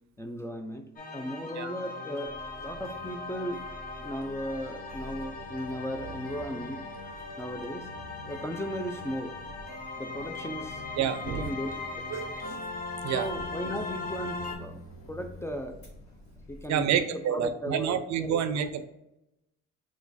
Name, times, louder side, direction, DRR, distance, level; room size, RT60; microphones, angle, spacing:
voice 1, 0.2-3.7 4.0-7.9 8.3-9.3 10.0-10.8 11.2-11.7 13.0-14.8 15.1-15.9 16.5-18.4, equal, 10° left, 6 dB, 0.3 m, -36 dB
sound 1, 1.0-14.6, left 3 dB, 30° left, 0.8 m, -39 dB
sound 2, 2.2-16.9, left 1 dB, 65° left, 1.4 m, -49 dB
voice 2, 11.0-11.5 12.1-12.6 13.0-13.3 16.7-18.8, right 8 dB, 65° right, 11 dB, 0.5 m, -29 dB
4.4 x 2.3 x 4.0 m, 0.89 s
cardioid pair, 90°, 30 cm